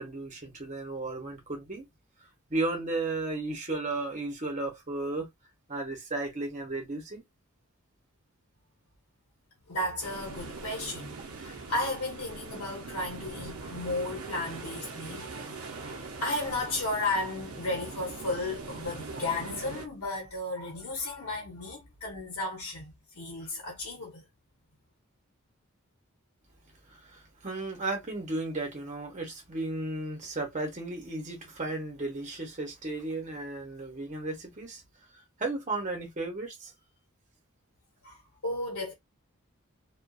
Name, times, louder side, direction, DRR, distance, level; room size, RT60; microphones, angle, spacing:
voice 1, 0.0-1.8 2.5-5.3 5.7-7.2 26.9-34.8 35.4-36.7, right 2 dB, 35° right, 0.9 m, -34 dB
voice 2, 9.7-24.2 38.0-38.9, left 2 dB, 90° left, 0.8 m, -34 dB
sound 1, 10.0-19.9, right 4 dB, 85° right, 0.6 m, -42 dB
2.5 x 2.3 x 2.3 m
head